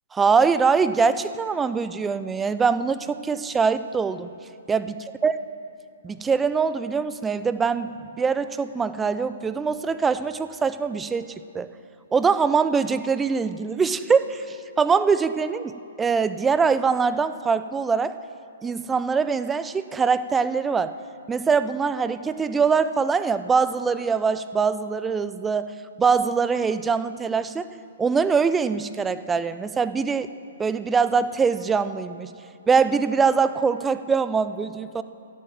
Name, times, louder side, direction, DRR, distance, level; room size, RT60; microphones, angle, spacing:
voice 1, 0.1-4.3 4.7-4.9 5.2-5.3 6.0-7.9 8.2-11.3 11.5-11.7 12.1-18.2 18.6-20.9 21.3-25.7 26.0-27.7 28.0-30.3 30.6-32.3 32.7-35.0, right 5 dB, 10° right, 13 dB, 0.4 m, -23 dB
14.0 x 8.5 x 7.5 m, 2.6 s
figure-of-eight pair, 120°, 0 cm